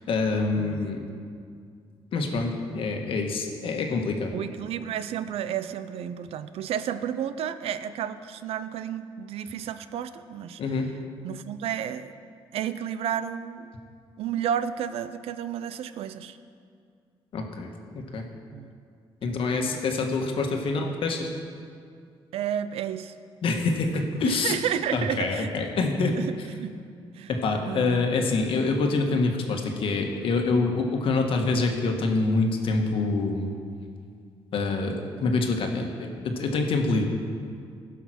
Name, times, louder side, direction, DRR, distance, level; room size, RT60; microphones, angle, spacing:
voice 1, 0.1-1.0 2.1-4.3 10.6-10.9 17.3-17.7 17.9-18.2 19.2-21.3 23.4-24.5 24.9-26.1 27.3-33.5 34.5-37.0, left 3 dB, 65° left, 3 dB, 1.4 m, -26 dB
voice 2, 0.6-0.9 3.9-4.0 4.3-10.6 11.2-12.1 12.5-13.7 14.2-16.4 18.5-18.7 19.2-20.1 20.5-20.7 22.3-23.1 24.2-25.6 26.0-26.8 27.1-27.3 27.7-28.1, right 9 dB, 80° right, 12 dB, 0.5 m, -32 dB
15.0 x 5.8 x 6.2 m, 2.2 s
cardioid pair, 95°, 10 cm